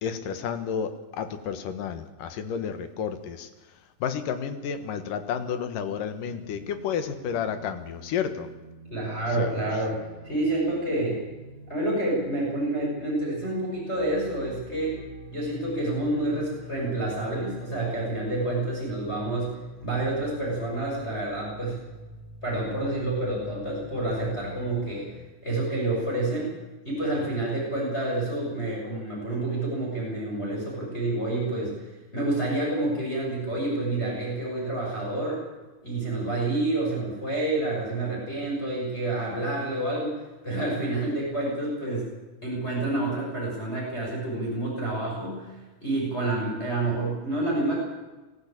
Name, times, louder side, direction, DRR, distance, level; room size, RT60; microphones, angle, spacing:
voice 1, 0.0-3.5 4.0-8.5 9.4-9.5, left 7 dB, 65° left, 9 dB, 2.9 m, -31 dB
sound 1, 6.2-25.1, left 1 dB, 50° left, 5.6 m, -45 dB
voice 2, 8.9-11.2 11.7-15.0 15.3-19.6 19.8-21.8 22.4-26.5 26.8-35.4 35.8-40.1 40.4-42.1 42.4-47.8, right 2 dB, 15° left, -3 dB, 6.3 m, -28 dB
21.0 x 14.5 x 8.6 m, 1.2 s
omnidirectional pair, 4.3 m